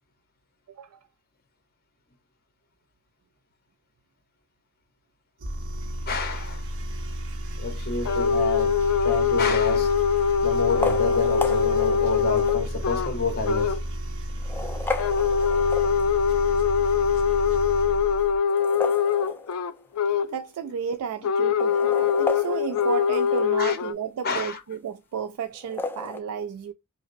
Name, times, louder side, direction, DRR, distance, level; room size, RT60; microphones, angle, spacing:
sound 1, 5.4-18.4, equal, 55° right, 0.7 m, -33 dB
voice 1, 6.1-6.7 7.6-8.8 9.0-10.0 10.4-13.8 23.6-23.8 24.2-24.6, left 3 dB, 45° left, 0.8 m, -29 dB
sound 2, 8.0-13.1 13.4-13.8 15.0-20.3 21.2-23.9, left 7 dB, 75° left, 0.4 m, -23 dB
sound 3, 8.9-9.4 10.6-12.7 13.3-13.4 14.3-16.3 18.4-19.9 20.2-20.3 20.5-20.6 21.4-23.7 25.5-26.2, left 3 dB, 10° left, 0.3 m, -34 dB
voice 2, 20.2-26.7, right 7 dB, 85° right, 0.3 m, -32 dB
4.9 x 2.0 x 2.5 m
head